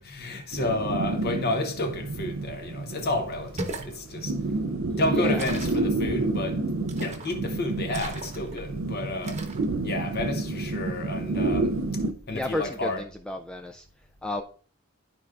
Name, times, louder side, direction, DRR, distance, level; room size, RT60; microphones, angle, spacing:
voice 1, 0.0-4.4 5.0-6.7 7.0-9.5 9.8-13.0, left 2 dB, 50° left, 0.8 m, -31 dB
sound 1, 0.5-12.1, right 2 dB, 70° right, 0.5 m, -30 dB
sound 2, 3.4-3.9 5.4-5.9 6.9-7.4 7.9-8.6 9.2-9.6, right 2 dB, 30° right, 1.0 m, -37 dB
voice 2, 4.9-5.4 12.3-13.9 14.2-14.4, left 1 dB, 5° left, 0.3 m, -32 dB
12.0 x 4.6 x 2.4 m
head